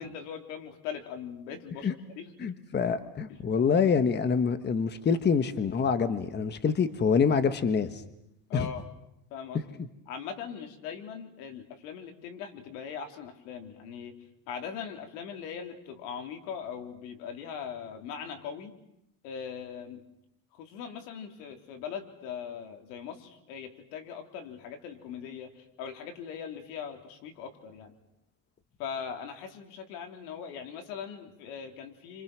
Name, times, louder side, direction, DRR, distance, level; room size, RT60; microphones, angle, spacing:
voice 1, 0.0-2.5 3.3-3.4 8.5-8.9 9.3-9.8 10.1-14.1 14.5-18.7 19.2-20.1 20.5-27.9 28.8-32.2, left 7 dB, 90° left, 5 dB, 3.8 m, -40 dB
voice 2, 2.4-8.0 8.5-8.7, left 6 dB, 20° left, 11 dB, 1.3 m, -26 dB
29.5 x 26.5 x 6.2 m, 0.79 s
cardioid pair, 140°, 47 cm